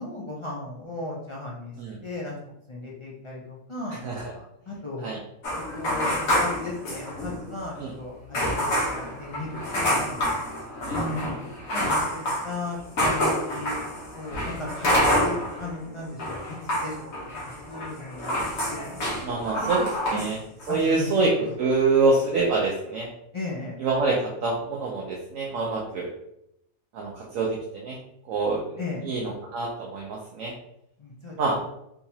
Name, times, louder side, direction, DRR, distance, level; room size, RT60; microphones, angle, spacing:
voice 1, 0.0-1.7 2.0-2.3 2.7-4.0 4.3-5.1 5.7-9.6 9.9-10.2 10.9-11.4 11.7-17.0 17.7-18.4 18.7-18.9 19.3-19.6 20.7-21.1 23.3-23.8 28.8-29.0 31.0-31.7, left 2 dB, 50° left, -5 dB, 0.3 m, -36 dB
sound 1, 5.4-7.5 7.8-7.9 8.3-15.7 16.0-20.3 20.6-20.9, equal, 80° left, 1.5 m, -27 dB
voice 2, 19.2-20.4 20.7-23.1 23.8-26.1 26.9-28.0 28.3-28.8 29.0-30.5 31.4-31.6, right 3 dB, 80° right, -2 dB, 1.0 m, -26 dB
3.7 x 2.8 x 2.7 m, 0.80 s
omnidirectional pair, 1.4 m